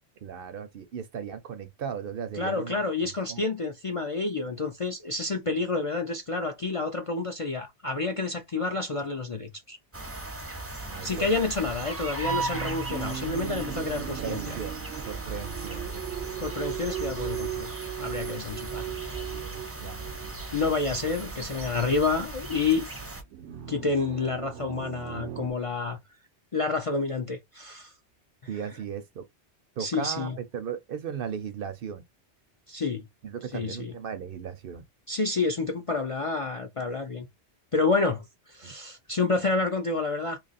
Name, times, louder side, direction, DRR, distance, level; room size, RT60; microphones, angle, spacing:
voice 1, 0.2-3.4 10.9-11.5 13.9-15.8 18.6-18.8 19.1-20.1 28.5-29.2 29.8-32.0 33.2-34.8 38.6-38.7, right 7 dB, 60° right, 0.7 m, -37 dB
voice 2, 2.3-9.8 11.0-14.6 16.4-17.7 18.0-18.9 20.5-22.9 23.7-26.0 26.5-27.9 29.8-30.4 32.7-33.0 33.5-33.9 35.1-37.3 37.7-40.4, left 3 dB, 45° left, 0.4 m, -29 dB
sound 1, 9.9-23.2, right 3 dB, 15° right, 0.5 m, -37 dB
sound 2, 12.2-21.3 23.3-25.5, right 12 dB, 85° right, 0.9 m, -38 dB
2.9 x 2.4 x 4.0 m
omnidirectional pair, 1.1 m